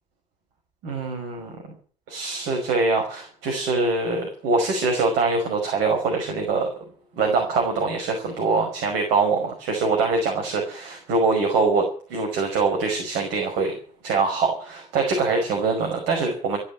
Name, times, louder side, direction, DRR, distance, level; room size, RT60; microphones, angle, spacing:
voice 1, 0.8-1.6 2.1-6.7 7.2-13.8 14.0-16.6, right 3 dB, 60° right, 1 dB, 5.5 m, -23 dB
14.5 x 11.5 x 8.7 m, 0.43 s
figure-of-eight pair, 55°, 21 cm